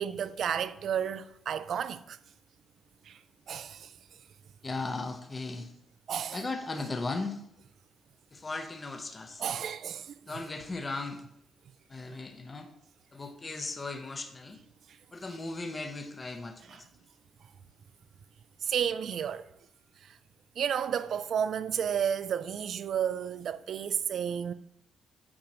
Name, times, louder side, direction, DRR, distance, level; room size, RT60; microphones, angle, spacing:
voice 1, 0.0-2.2 3.1-3.2 3.5-3.9 6.1-6.5 9.4-10.4 16.7-16.8 18.6-19.5 20.0-20.2 20.6-24.5, right 8 dB, 55° right, 0.3 m, -32 dB
voice 2, 4.6-5.7 6.3-7.4 8.3-9.4 10.2-11.2 11.9-12.7 13.1-14.6 15.1-16.8, left 3 dB, 20° left, 0.6 m, -37 dB
8.7 x 5.1 x 2.9 m
cardioid pair, 155°, 0 cm